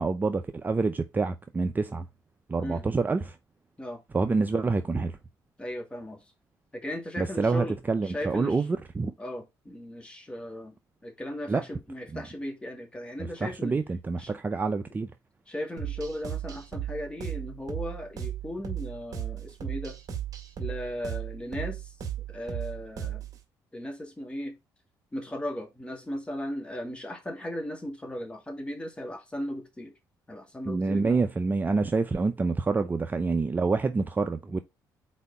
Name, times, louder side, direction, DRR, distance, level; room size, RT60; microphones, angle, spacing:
voice 1, 0.0-2.1 2.5-3.4 4.1-5.2 7.2-9.1 11.5-11.6 12.1-12.2 13.2-15.1 30.7-34.6, right 4 dB, 25° right, 0.6 m, -27 dB
voice 2, 5.6-6.2 6.7-8.6 9.2-10.8 11.0-13.8 14.2-14.3 15.5-20.0 20.6-21.9 22.3-23.2 23.7-24.6 25.1-29.9 30.3-31.2, left 1 dB, 15° left, 2.1 m, -37 dB
sound 1, 15.8-23.4, right 10 dB, 50° right, 1.9 m, -35 dB
4.6 x 4.2 x 5.3 m
cardioid pair, 100°, 8 cm